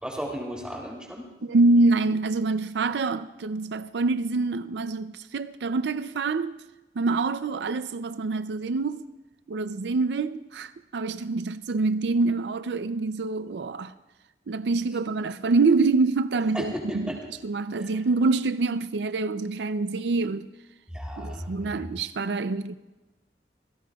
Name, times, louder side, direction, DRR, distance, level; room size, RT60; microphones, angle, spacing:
voice 1, 0.0-1.3 16.5-17.2 17.8-18.0 20.9-21.8, equal, 5° right, 3.0 m, -34 dB
voice 2, 1.4-6.6 7.0-9.0 9.5-13.9 14.5-17.1 17.4-20.5 21.2-22.7, right 3 dB, 80° right, 0.5 m, -25 dB
26.5 x 17.0 x 2.3 m
head